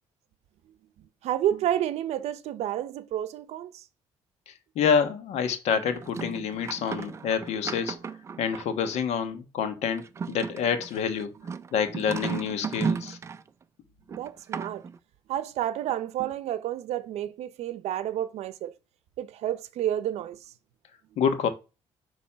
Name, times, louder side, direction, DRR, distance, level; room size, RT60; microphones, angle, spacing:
voice 1, 1.2-3.8 14.1-14.8 15.3-18.7 19.2-20.4, right 11 dB, 75° right, 0.7 m, -30 dB
voice 2, 4.5-8.0 8.4-11.3 11.7-13.2 21.2-21.5, left 7 dB, 75° left, 1.3 m, -27 dB
sound 1, 5.9-9.0 10.0-13.5 14.1-15.0, right 6 dB, 25° right, 0.4 m, -35 dB
8.6 x 3.1 x 5.6 m
cardioid pair, 170°, 11 cm